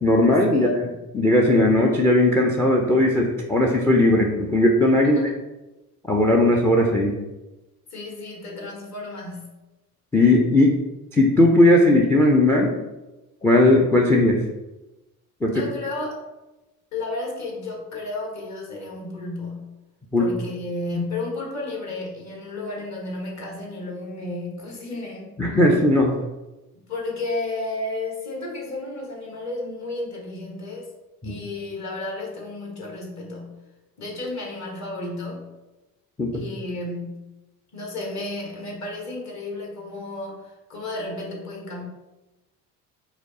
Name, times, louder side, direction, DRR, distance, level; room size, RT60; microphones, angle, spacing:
voice 1, 0.0-5.2 6.1-7.2 10.1-10.8 11.1-12.7 13.4-14.4 15.4-15.6 20.1-20.3 25.4-26.2 31.2-31.3 36.2-36.4, left 1 dB, 5° left, 2 dB, 0.3 m, -18 dB
voice 2, 0.5-0.9 5.0-5.3 7.9-9.5 15.4-16.2 16.9-19.7 20.2-25.3 26.9-30.9 31.2-33.5 34.0-35.5 36.3-37.3 37.7-41.8, left 2 dB, 35° left, -1 dB, 1.4 m, -32 dB
4.9 x 2.0 x 4.0 m, 1.0 s
figure-of-eight pair, 55°, 45 cm